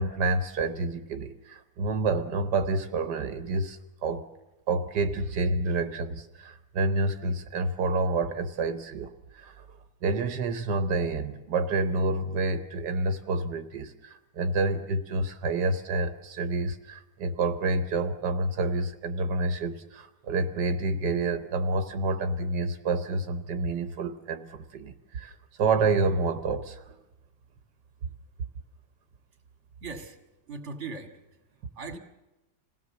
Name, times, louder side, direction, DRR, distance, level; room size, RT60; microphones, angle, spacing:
voice 1, 0.0-4.2 4.7-26.8, right 3 dB, 85° right, 8 dB, 1.6 m, -28 dB
voice 2, 29.8-30.2 30.5-31.2 31.7-32.0, right 4 dB, 45° right, 4 dB, 2.4 m, -38 dB
26.5 x 17.5 x 7.2 m, 1.0 s
omnidirectional pair, 1.8 m